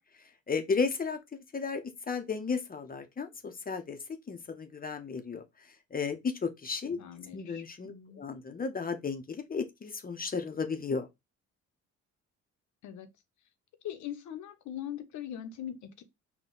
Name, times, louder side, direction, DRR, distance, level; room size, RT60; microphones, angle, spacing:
voice 1, 0.5-1.8 2.1-4.0 4.3-7.0 7.3-11.1, left 5 dB, 30° left, 0.7 m, -34 dB
voice 2, 6.8-8.2 12.8-13.1 13.8-16.0, left 10 dB, 75° left, 0.8 m, -41 dB
4.1 x 2.2 x 3.7 m
cardioid pair, 90°, 30 cm